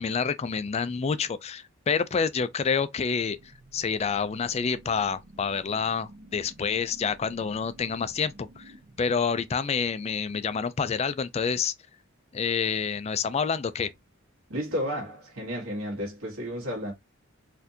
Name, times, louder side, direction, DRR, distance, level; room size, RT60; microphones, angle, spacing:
voice 1, 0.0-3.4 3.7-11.7 12.3-13.9, left 6 dB, 30° left, 0.3 m, -28 dB
sound 1, 3.1-9.9, right 1 dB, 50° right, 0.7 m, -52 dB
voice 2, 14.5-16.9, equal, 90° right, 1.5 m, -32 dB
4.3 x 2.6 x 2.7 m
head